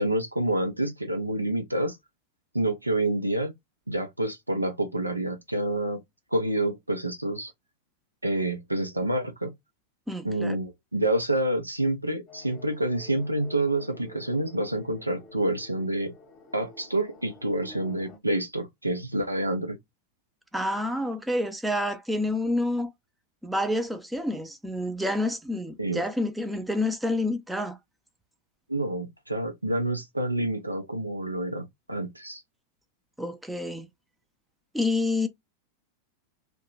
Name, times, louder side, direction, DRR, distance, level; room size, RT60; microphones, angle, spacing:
voice 1, 0.0-2.0 2.5-3.5 3.9-6.0 6.3-7.5 8.2-9.5 10.2-16.1 16.5-19.8 25.8-26.0 28.7-32.4, right 1 dB, 85° right, 0.6 m, -28 dB
voice 2, 10.1-10.6 20.5-22.9 23.4-27.8 33.2-33.9 34.7-35.3, left 1 dB, 5° right, 0.5 m, -28 dB
sound 1, 12.3-18.2, left 1 dB, 30° left, 0.9 m, -49 dB
2.8 x 2.2 x 3.7 m
figure-of-eight pair, 90°, 0 cm